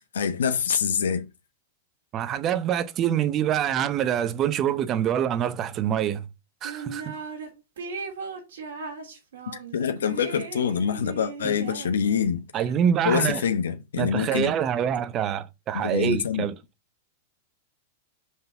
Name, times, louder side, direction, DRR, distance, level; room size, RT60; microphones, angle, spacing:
voice 1, 0.1-1.2 9.7-12.4 13.0-14.5 15.7-16.4, left 7 dB, 90° left, 0.9 m, -25 dB
voice 2, 2.1-6.3 6.6-7.2 11.4-11.5 12.5-13.4 14.0-16.5, right 9 dB, 30° right, 0.8 m, -25 dB
sound 1, 6.6-7.5 7.8-12.4, right 5 dB, 85° right, 2.7 m, -38 dB
5.6 x 3.8 x 5.7 m
hypercardioid pair, 130°, 0 cm